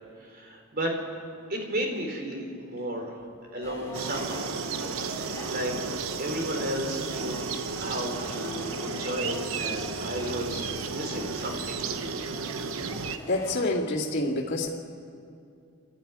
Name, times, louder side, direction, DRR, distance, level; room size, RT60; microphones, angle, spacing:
voice 1, 0.2-0.9 1.5-3.2 3.5-4.4 5.0-5.2 5.5-7.5 7.8-11.8, right 1 dB, 45° right, 2 dB, 3.6 m, -33 dB
sound 1, 3.6-13.6, equal, 10° left, 4.9 m, -42 dB
sound 2, 3.9-13.2, right 5 dB, 70° right, 0.9 m, -33 dB
voice 2, 13.3-14.7, left 2 dB, 45° left, -9 dB, 2.4 m, -27 dB
28.0 x 12.5 x 9.4 m, 2.5 s
head